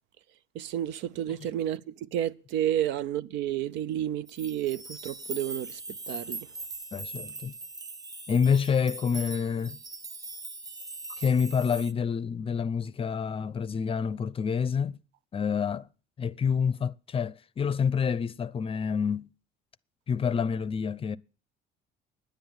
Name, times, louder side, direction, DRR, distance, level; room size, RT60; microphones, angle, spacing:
voice 1, 0.5-6.5, right 11 dB, 80° right, 0.6 m, -31 dB
sound 1, 4.3-11.9, right 2 dB, 20° right, 0.7 m, -41 dB
voice 2, 6.9-7.6 8.3-9.8 11.2-15.0 15.3-15.9 16.2-19.3 20.1-21.2, left 6 dB, 30° left, 0.6 m, -28 dB
10.5 x 7.8 x 8.8 m
cardioid pair, 110°, 18 cm